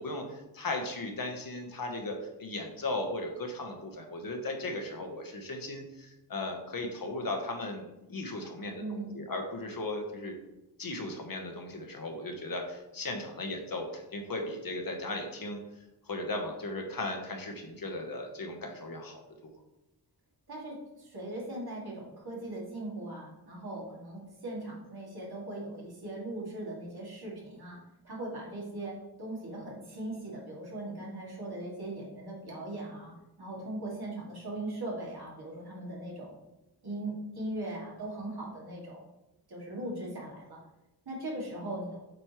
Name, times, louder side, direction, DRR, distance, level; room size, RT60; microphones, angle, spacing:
voice 1, 0.0-10.4 10.8-15.6 16.0-19.5, left 2 dB, 55° left, 3 dB, 1.1 m, -37 dB
voice 2, 8.8-9.2 20.5-36.4 36.8-39.0 39.5-40.6 41.1-42.0, right 1 dB, 60° right, -4 dB, 2.4 m, -39 dB
7.8 x 5.2 x 3.1 m, 0.96 s
wide cardioid pair, 130°, 42 cm